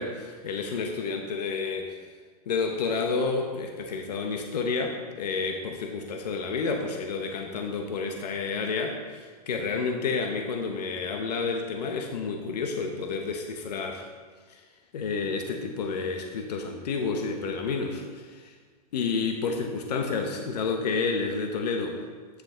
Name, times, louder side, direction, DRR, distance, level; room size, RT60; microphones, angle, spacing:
voice 1, 0.0-2.0 2.5-14.1 14.5-14.6 14.9-18.5 18.9-22.0, left 4 dB, 80° left, 4 dB, 1.0 m, -30 dB
9.8 x 6.4 x 3.8 m, 1.6 s
hypercardioid pair, 125°, 21 cm